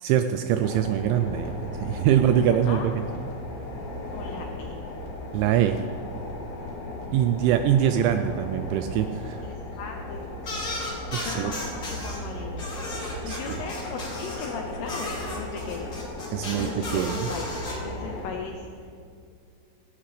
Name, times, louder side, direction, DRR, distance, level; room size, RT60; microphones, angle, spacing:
voice 1, 0.0-2.8 5.3-5.8 7.1-9.5 11.1-11.5 13.3-13.6 16.3-17.3, right 10 dB, 85° right, 8 dB, 2.7 m, -23 dB
sound 1, 0.6-18.3, left 1 dB, 50° left, 2.8 m, -36 dB
voice 2, 2.1-2.9 4.1-4.8 9.4-10.3 11.2-12.7 13.2-15.9 16.6-18.9, left 5 dB, 85° left, 3 dB, 2.3 m, -38 dB
sound 2, 10.4-12.2 12.6-14.5 14.9-17.7, left 2 dB, 30° left, 2.6 m, -35 dB
17.5 x 16.5 x 3.4 m, 2.3 s
omnidirectional pair, 5.7 m